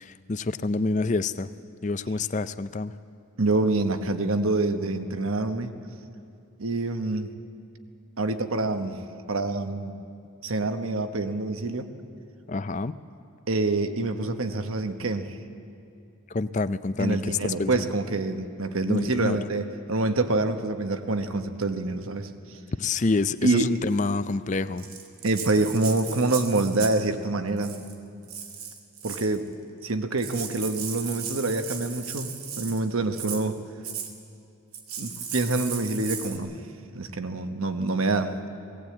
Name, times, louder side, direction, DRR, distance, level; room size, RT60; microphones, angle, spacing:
voice 1, 0.0-1.5 1.8-2.9 12.5-13.0 16.3-17.7 18.9-19.4 22.8-24.8, left 3 dB, 35° left, 13 dB, 0.4 m, -27 dB
voice 2, 3.4-5.7 6.6-7.4 8.2-9.0 9.3-9.9 10.4-11.9 13.5-15.4 17.0-22.6 23.4-23.7 25.2-27.8 29.0-29.5 29.8-33.6 35.0-36.6 36.9-38.4, right 2 dB, 75° right, 8 dB, 1.1 m, -26 dB
Rattle (instrument), 24.8-27.1 27.6-27.9 28.3-29.3 29.9-30.0 30.2-32.8 33.1-33.4 33.8-34.1 34.7-36.4, right 7 dB, 90° right, 2.1 m, -36 dB
19.0 x 17.5 x 8.6 m, 2.5 s
head